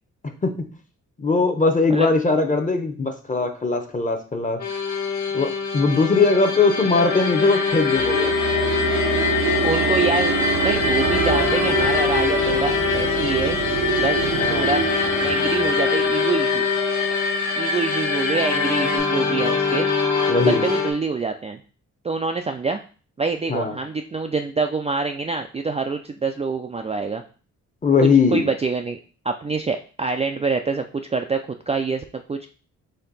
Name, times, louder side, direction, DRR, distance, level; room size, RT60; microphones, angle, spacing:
voice 1, 1.2-4.6 5.3-8.3 14.4-14.7 20.3-20.6 23.5-23.8 27.8-28.5, left 4 dB, 25° left, 6 dB, 0.8 m, -20 dB
sound 1, 4.6-20.9, left 5 dB, 55° left, 1.4 m, -24 dB
sound 2, 6.7-19.0, left 4 dB, 85° left, 1.2 m, -26 dB
sound 3, 7.7-16.8, right 6 dB, 85° right, 0.8 m, -26 dB
voice 2, 9.6-10.3 10.6-13.6 13.9-14.2 14.5-14.8 15.2-16.7 17.6-19.9 20.4-21.6 22.0-22.8 23.2-27.2 28.3-29.0 29.2-32.5, right 4 dB, 20° right, 4 dB, 0.4 m, -25 dB
4.3 x 2.8 x 4.0 m, 0.38 s
cardioid pair, 80°, 31 cm